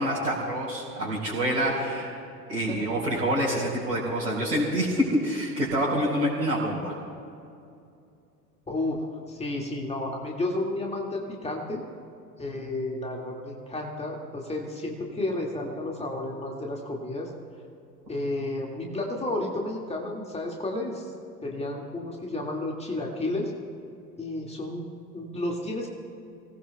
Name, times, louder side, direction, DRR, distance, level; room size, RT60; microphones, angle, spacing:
voice 1, 0.0-2.1 2.5-6.9, equal, 75° right, -7 dB, 4.4 m, -26 dB
voice 2, 8.7-9.0 9.3-11.8 12.4-17.3 18.1-21.1 21.4-23.5 24.2-24.8 25.1-25.9, left 2 dB, 15° left, -1 dB, 2.1 m, -32 dB
28.5 x 19.0 x 2.3 m, 2.6 s
figure-of-eight pair, 90°, 49 cm